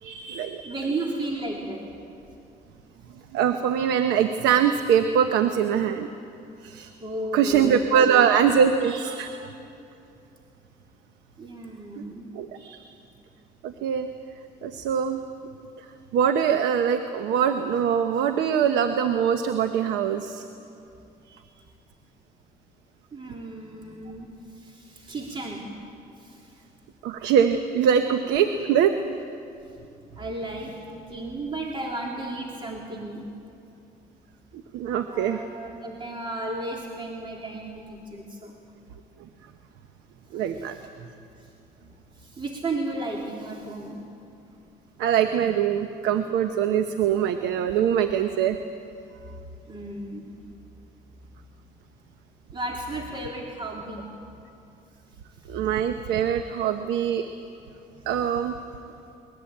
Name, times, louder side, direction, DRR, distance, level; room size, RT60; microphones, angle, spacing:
voice 1, 0.0-0.9 3.3-6.1 6.6-6.9 7.3-9.5 12.3-12.8 13.6-14.1 14.6-15.2 16.1-20.4 21.3-21.4 27.0-28.9 34.5-35.4 40.3-40.8 45.0-48.6 55.5-57.3 58.1-58.6, right 8 dB, 85° right, 8 dB, 1.0 m, -23 dB
voice 2, 0.6-1.9 7.0-8.1 11.4-12.3 23.1-25.7 26.2-26.6 27.2-27.3 29.6-29.8 30.2-33.2 35.1-38.6 40.3-40.9 41.4-41.5 42.1-44.0 44.5-44.6 49.7-50.3 52.5-54.1 55.1-55.6, right 2 dB, 30° right, -1 dB, 3.2 m, -34 dB
22.5 x 20.5 x 8.7 m, 2.7 s
cardioid pair, 85°, 17 cm